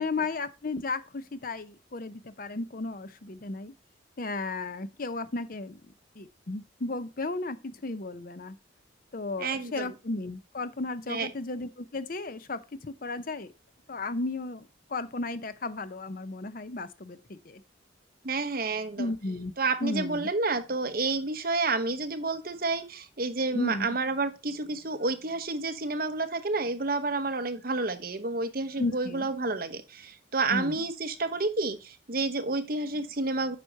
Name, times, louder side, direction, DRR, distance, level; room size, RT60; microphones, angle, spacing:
voice 1, 0.0-3.7 4.2-5.8 6.2-8.6 9.1-13.5 13.9-17.6 19.0-19.5 19.8-20.3 23.5-23.9 28.8-29.3 30.5-30.8, left 2 dB, 45° left, 0.7 m, -34 dB
voice 2, 9.4-9.9 11.1-11.3 18.2-19.1 19.6-33.6, right 3 dB, 50° right, 1.0 m, -30 dB
9.2 x 6.1 x 2.8 m
head